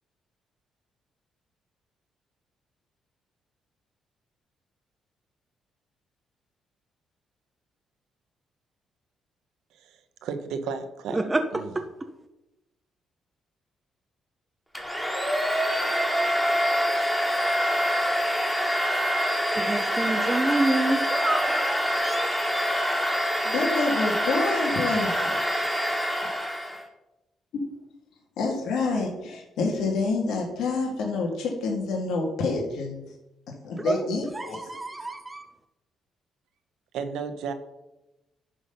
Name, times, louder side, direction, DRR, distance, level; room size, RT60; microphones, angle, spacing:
voice 1, 9.8-11.7 36.9-37.5, right 5 dB, 85° right, 8 dB, 1.0 m, -34 dB
voice 2, 11.1-11.8 19.5-23.0 33.8-34.0 34.3-35.4, right 2 dB, 15° right, 6 dB, 0.7 m, -28 dB
Domestic sounds home sounds, 14.7-26.8, equal, ahead, 1.9 m, -25 dB
voice 3, 23.4-25.4 27.5-27.6 28.4-33.0 33.6-34.8, left 3 dB, 80° left, 0 dB, 1.9 m, -28 dB
11.0 x 4.1 x 5.6 m, 0.94 s
cardioid pair, 90°, 0 cm